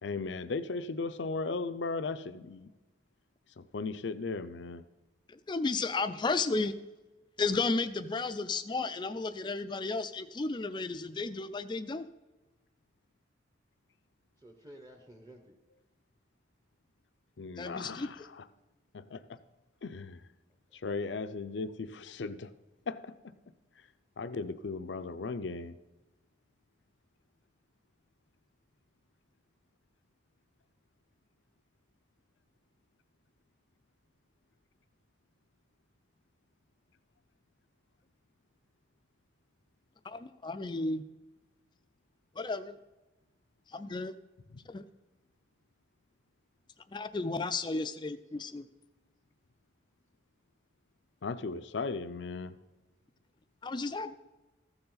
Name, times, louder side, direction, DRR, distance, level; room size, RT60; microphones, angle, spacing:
voice 1, 0.0-2.7 3.6-4.8 17.4-18.4 18.9-19.4 19.8-20.3 20.7-22.5 22.9-23.3 23.8-23.9 24.2-25.8 44.5-44.6 51.2-52.6, left 4 dB, 75° left, 12 dB, 0.5 m, -37 dB
voice 2, 5.3-6.8 7.4-12.1 17.6-18.1 40.0-41.0 42.4-42.8 43.7-44.2 44.7-44.9 46.9-48.7 53.6-54.2, left 3 dB, 25° left, 12 dB, 0.4 m, -33 dB
voice 3, 14.4-15.6 20.7-20.9 54.1-54.2, right 1 dB, 20° right, 2 dB, 0.9 m, -53 dB
14.5 x 6.9 x 3.9 m, 1.1 s
head